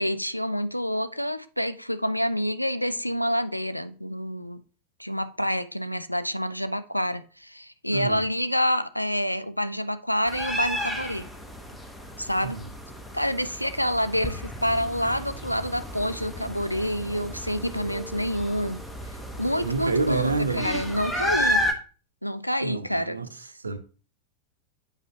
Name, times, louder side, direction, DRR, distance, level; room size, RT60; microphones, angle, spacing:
voice 1, 0.0-4.6 5.0-11.3 12.2-12.6 13.1-18.8 19.4-21.7 22.2-23.2, equal, 90° left, 0.4 m, -27 dB
voice 2, 7.9-8.2 12.4-12.7 19.6-20.7 22.6-23.3 23.6-23.8, right 4 dB, 75° right, 0.7 m, -28 dB
sound 1, 10.3-21.7, equal, 5° left, 0.9 m, -32 dB
7.9 x 5.3 x 2.8 m
figure-of-eight pair, 90°, 0 cm